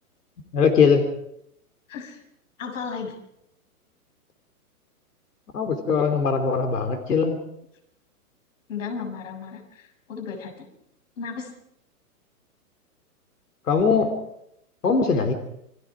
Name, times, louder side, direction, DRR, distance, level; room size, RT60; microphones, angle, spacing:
voice 1, 0.5-1.1 5.5-7.4 13.7-14.1 14.8-15.3, left 5 dB, 85° left, 7 dB, 3.7 m, -20 dB
voice 2, 1.9-2.2 2.6-3.2 8.7-10.7 11.2-11.5, left 5 dB, 55° left, 3 dB, 7.0 m, -34 dB
29.0 x 23.5 x 4.9 m, 0.76 s
hypercardioid pair, 155°, 45 cm